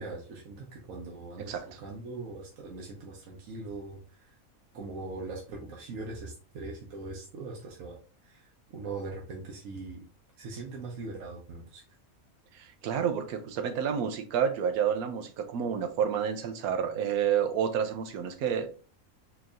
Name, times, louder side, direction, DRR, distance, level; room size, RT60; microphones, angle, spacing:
voice 1, 0.0-1.5 1.8-4.0 4.7-7.9 8.2-8.4 8.7-10.0 10.4-11.8, right 3 dB, 65° right, -2 dB, 1.1 m, -40 dB
voice 2, 12.5-18.7, right 8 dB, 90° right, 7 dB, 1.2 m, -29 dB
4.4 x 2.9 x 2.5 m, 0.37 s
omnidirectional pair, 1.5 m